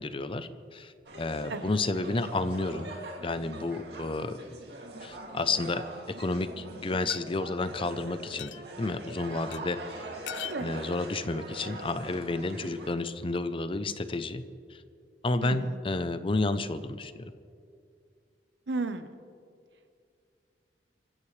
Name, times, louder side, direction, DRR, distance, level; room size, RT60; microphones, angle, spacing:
voice 1, 0.0-2.9 3.2-4.4 5.0-8.5 8.8-10.0 10.6-14.4 14.7-14.8 15.2-17.3, left 2 dB, 30° left, 12 dB, 0.6 m, -31 dB
sound 1, 1.1-12.9, right 2 dB, 65° right, 2.5 m, -43 dB
sound 2, 5.1-5.7 7.1-7.2 8.4-8.6 9.5-9.6 10.3-10.6, left 12 dB, 85° left, 0.4 m, -40 dB
voice 2, 18.7-19.1, right 3 dB, 85° right, 9 dB, 1.0 m, -33 dB
25.0 x 15.5 x 3.3 m, 2.4 s
head